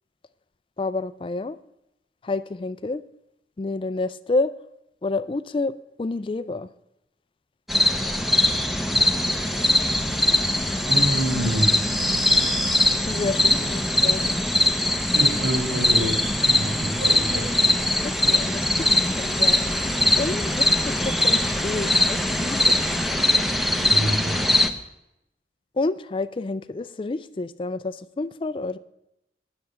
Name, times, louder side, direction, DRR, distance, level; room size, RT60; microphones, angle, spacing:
voice 1, 0.8-1.6 2.2-3.0 3.6-4.5 5.0-5.7 6.0-6.7 13.1-14.3 18.0-22.8 25.8-28.8, left 3 dB, 30° left, 14 dB, 0.4 m, -29 dB
sound 1, 7.7-24.7, left 1 dB, ahead, 0.8 m, -21 dB
voice 2, 9.1-10.0 10.9-12.1 15.1-17.5 23.8-24.4, equal, 70° right, 1 dB, 5.3 m, -28 dB
10.0 x 6.9 x 8.5 m, 0.84 s
head